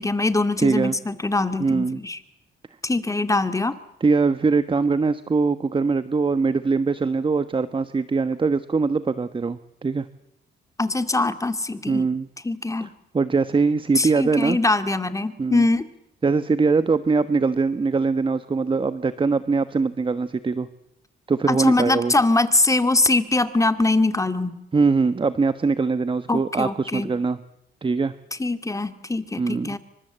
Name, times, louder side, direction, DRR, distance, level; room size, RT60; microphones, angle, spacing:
voice 1, 0.0-2.2 2.8-3.8 10.8-12.1 12.4-12.9 14.0-15.9 21.5-24.5 26.3-27.1 28.4-29.8, left 2 dB, 15° left, 9 dB, 2.2 m, -22 dB
voice 2, 0.6-0.9 1.6-2.0 4.0-10.1 11.9-12.3 12.8-12.9 13.1-14.6 15.4-15.6 16.2-20.7 21.3-22.1 24.7-27.4 27.8-28.1 29.4-29.7, right 4 dB, 25° right, 12 dB, 1.2 m, -22 dB
28.0 x 25.0 x 8.1 m, 0.85 s
cardioid pair, 90°, 20 cm